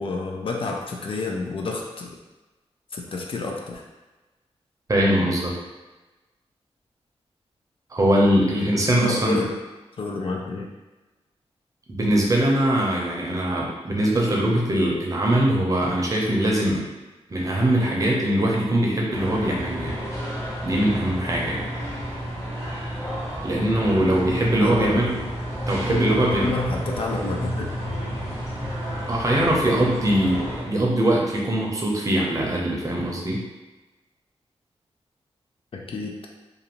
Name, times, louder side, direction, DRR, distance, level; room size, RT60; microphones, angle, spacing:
voice 1, 0.0-2.2 2.9-3.8 8.9-9.6 10.0-10.7 24.6-25.0 25.9-27.7 35.7-36.1, left 3 dB, 55° left, 0 dB, 0.4 m, -29 dB
voice 2, 4.9-5.5 7.9-9.4 11.9-16.8 17.3-20.0 20.6-21.7 23.4-25.1 25.7-26.5 29.1-33.4, right 1 dB, 30° right, -3 dB, 0.7 m, -22 dB
sound 1, 19.1-30.6, equal, 30° left, 1.1 m, -31 dB
2.5 x 2.5 x 2.9 m, 1.1 s
wide cardioid pair, 100°, 11 cm